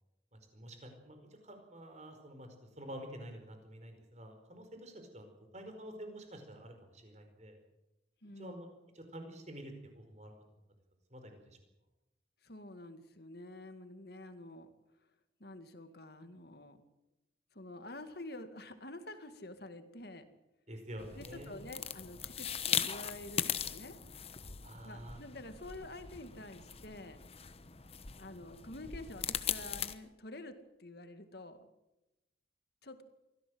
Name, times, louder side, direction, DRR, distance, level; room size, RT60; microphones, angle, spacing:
voice 1, 0.3-2.5 2.8-7.6 8.4-8.7 8.9-10.3 11.1-11.6 20.7-21.6 24.6-25.2, right 1 dB, 40° right, 6 dB, 4.8 m, -48 dB
voice 2, 8.2-8.5 12.4-14.7 15.4-16.8 17.5-20.2 21.2-23.9 24.8-27.2 28.2-31.7 32.8-33.0, left 1 dB, 55° left, 9 dB, 2.1 m, -48 dB
sound 1, 21.0-29.9, left 8 dB, 35° left, 1.0 m, -39 dB
24.0 x 16.5 x 7.9 m, 0.96 s
head